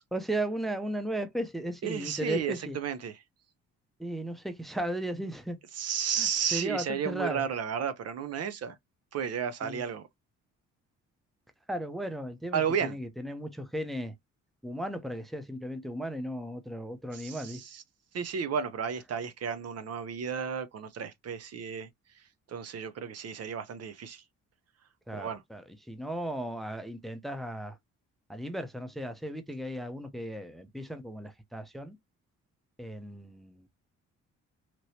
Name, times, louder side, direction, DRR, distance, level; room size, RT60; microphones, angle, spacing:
voice 1, 0.1-2.8 4.0-5.6 6.2-7.4 9.6-9.8 11.7-14.1 14.6-17.6 25.1-27.8 28.3-32.0 32.8-33.6, right 1 dB, ahead, 0.6 m, -36 dB
voice 2, 1.8-3.2 5.7-8.8 9.1-10.0 12.5-13.0 17.1-17.8 18.1-21.9 22.5-24.2 25.1-25.4, right 7 dB, 55° right, 0.6 m, -33 dB
3.0 x 2.9 x 2.8 m
cardioid pair, 90°, 30 cm